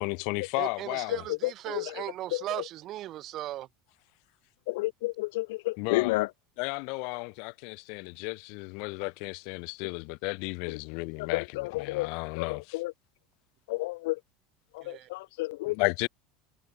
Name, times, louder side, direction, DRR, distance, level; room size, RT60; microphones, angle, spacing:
voice 1, 0.0-1.2 5.8-6.2 6.6-12.8 15.7-16.1, left 35 dB, 55° left, 0.7 m, -33 dB
voice 2, 0.6-3.7 14.8-15.1, right 14 dB, 35° right, 0.6 m, -37 dB
voice 3, 1.1-2.0 2.3-2.6 4.7-6.3 10.7-10.8 11.2-12.1 12.4-12.9 13.7-14.2 14.7-16.1, left 21 dB, 80° left, 0.3 m, -31 dB
cardioid pair, 165°, 0 cm